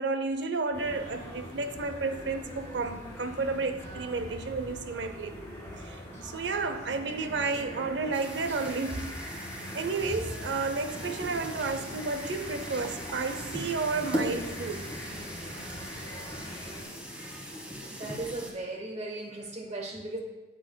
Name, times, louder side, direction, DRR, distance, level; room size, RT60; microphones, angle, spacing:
voice 1, 0.0-5.4 5.8-9.1 9.7-15.0, right 4 dB, 70° right, 0.6 m, -32 dB
sound 1, 0.7-16.8, equal, 15° left, 1.9 m, -42 dB
sound 2, 8.1-18.5, equal, 5° right, 1.2 m, -40 dB
voice 2, 17.9-20.2, right 2 dB, 35° right, 1.0 m, -37 dB
9.8 x 7.7 x 2.2 m
head